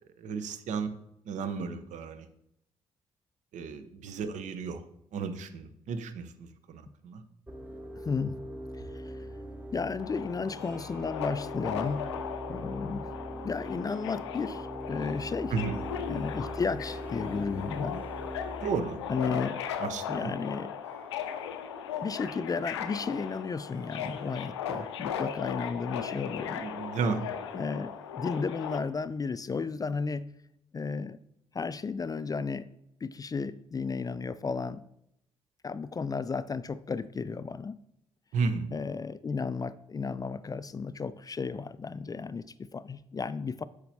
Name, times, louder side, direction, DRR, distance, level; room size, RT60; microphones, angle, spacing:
voice 1, 0.2-0.9 1.3-2.3 3.5-4.8 5.1-7.2 15.5-15.8 18.6-19.0 19.8-20.3 26.6-27.2 38.3-38.7, right 5 dB, 60° right, 10 dB, 0.8 m, -33 dB
sound 1, 7.5-19.4, right 1 dB, 15° right, 1.0 m, -41 dB
voice 2, 8.0-8.4 8.9-9.2 9.7-12.1 12.5-13.1 13.4-15.5 16.1-18.0 19.1-19.6 20.1-20.7 22.0-26.6 27.5-30.3 30.7-31.2 31.5-32.7 33.0-34.8 35.6-37.8 38.7-43.6, left 5 dB, 25° left, 16 dB, 0.4 m, -33 dB
Subway metro underground, 10.0-28.8, left 8 dB, 85° left, 0.5 m, -37 dB
Harp, 10.3-29.7, right 4 dB, 90° right, 3.0 m, -59 dB
8.1 x 6.6 x 2.7 m, 0.77 s
figure-of-eight pair, 40°, 14 cm